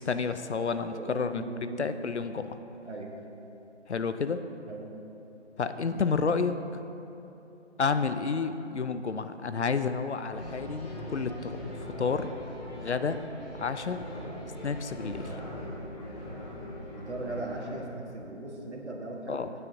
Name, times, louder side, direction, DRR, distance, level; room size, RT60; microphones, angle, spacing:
voice 1, 0.0-1.4 1.8-2.6 3.9-4.4 5.6-6.6 7.8-12.3 12.8-13.2 13.6-14.0 14.6-15.4 19.3-19.5, left 5 dB, 70° left, 10 dB, 0.6 m, -30 dB
voice 2, 1.3-1.8 2.9-3.1 4.7-4.9 17.0-19.4, right 2 dB, 70° right, -1 dB, 1.5 m, -38 dB
sound 1, 10.3-17.8, equal, 35° left, 2.4 m, -40 dB
14.0 x 9.1 x 2.7 m, 2.9 s
figure-of-eight pair, 155°, 35 cm